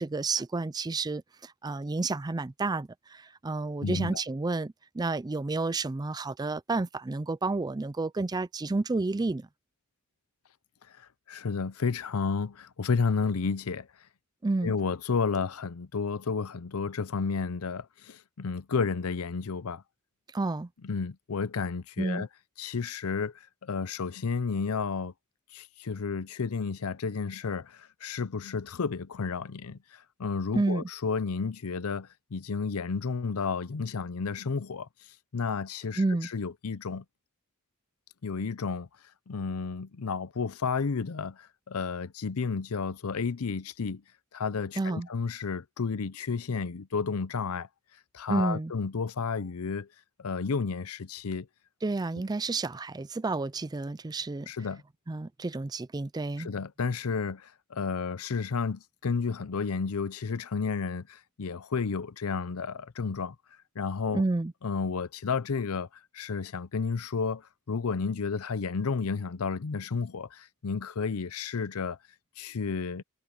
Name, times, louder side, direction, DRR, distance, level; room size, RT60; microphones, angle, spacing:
voice 1, 0.0-9.5 14.4-14.7 20.3-20.7 22.0-22.3 30.5-30.9 36.0-36.3 44.8-45.1 48.3-48.7 51.8-54.5 55.1-56.5 64.1-64.5, right 3 dB, 20° right, 0.4 m, -30 dB
voice 2, 3.8-4.2 11.3-13.9 14.6-19.8 20.8-22.3 22.6-23.3 23.6-25.1 25.5-29.8 30.2-34.9 35.3-37.0 38.2-38.9 39.3-44.0 44.3-47.7 48.1-49.9 50.2-51.5 54.5-54.8 56.4-63.3 63.8-64.2 64.6-65.9 66.1-67.4 67.7-72.0 72.4-73.0, left 5 dB, 80° left, 0.6 m, -31 dB
head